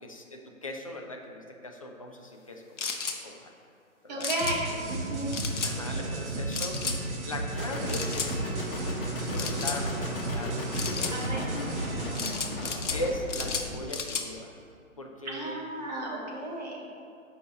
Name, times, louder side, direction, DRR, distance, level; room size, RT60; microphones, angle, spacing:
voice 1, 0.0-3.5 4.0-4.3 5.6-6.8 7.3-8.9 9.2-11.8 12.9-14.6 15.0-15.6, left 1 dB, 25° left, 1 dB, 0.5 m, -39 dB
sound 1, 2.8-3.2 4.2-4.6 5.3-5.7 6.5-7.0 7.9-8.3 9.3-9.8 10.7-11.1 12.2-13.0 13.3-14.3, left 5 dB, 60° left, 0.9 m, -33 dB
voice 2, 4.1-5.3 11.1-11.5 15.2-16.8, right 1 dB, 30° right, -2 dB, 1.3 m, -33 dB
sound 2, 4.4-12.2, right 2 dB, 55° right, 1.6 m, -34 dB
sound 3, 7.6-13.9, left 1 dB, 40° left, 1.4 m, -37 dB
13.5 x 5.5 x 2.8 m, 2.4 s
figure-of-eight pair, 145°, 42 cm